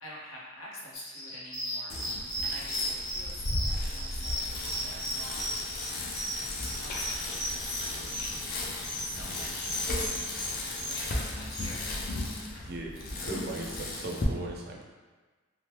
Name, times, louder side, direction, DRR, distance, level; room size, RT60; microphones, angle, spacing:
voice 1, 0.0-2.1 2.4-5.7 6.6-8.5 9.0-10.3 10.7-12.1, left 1 dB, 75° left, -5 dB, 0.7 m, -45 dB
sound 1, 0.9-11.7, equal, 20° left, 1.1 m, -36 dB
Bicycle, 1.9-14.2, left 2 dB, 40° left, 0.4 m, -35 dB
voice 2, 12.6-14.8, right 2 dB, 45° right, -1 dB, 0.4 m, -38 dB
3.1 x 2.0 x 2.9 m, 1.3 s
head